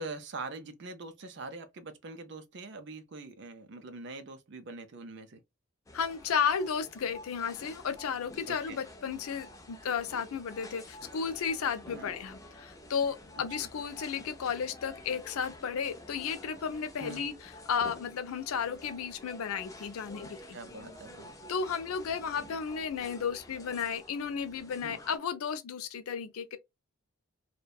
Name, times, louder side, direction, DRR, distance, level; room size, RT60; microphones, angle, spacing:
voice 1, 0.0-5.4 8.5-8.8 11.9-12.1 17.0-17.2 20.5-21.4 22.4-22.5 24.8-25.0, right 3 dB, 55° right, 0.4 m, -43 dB
voice 2, 5.9-20.6 21.5-26.6, left 6 dB, 85° left, 0.4 m, -33 dB
sound 1, 5.9-25.2, left 1 dB, 15° left, 0.3 m, -50 dB
2.6 x 2.1 x 2.2 m
head